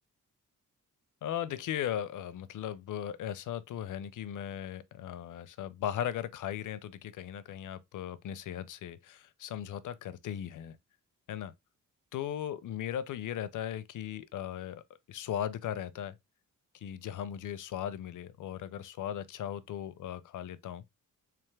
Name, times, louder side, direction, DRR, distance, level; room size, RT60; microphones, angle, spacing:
voice 1, 1.2-10.8 11.3-11.5 12.1-14.8 15.1-16.2 16.8-20.9, left 10 dB, 70° left, 0.5 m, -37 dB
3.5 x 3.4 x 3.2 m
wide cardioid pair, 140°, 32 cm